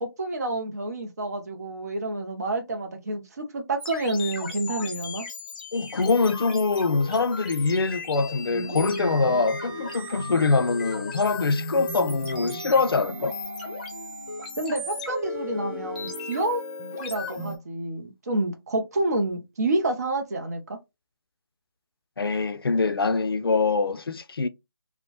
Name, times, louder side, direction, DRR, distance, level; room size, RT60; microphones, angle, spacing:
voice 1, 0.0-5.3 14.6-16.6 17.0-20.8, right 2 dB, 45° right, 0.6 m, -28 dB
sound 1, 3.8-17.6, left 2 dB, 25° left, 0.6 m, -35 dB
voice 2, 5.7-13.4 22.2-24.5, left 4 dB, 70° left, 0.4 m, -24 dB
2.9 x 2.0 x 2.8 m
figure-of-eight pair, 155°, 13 cm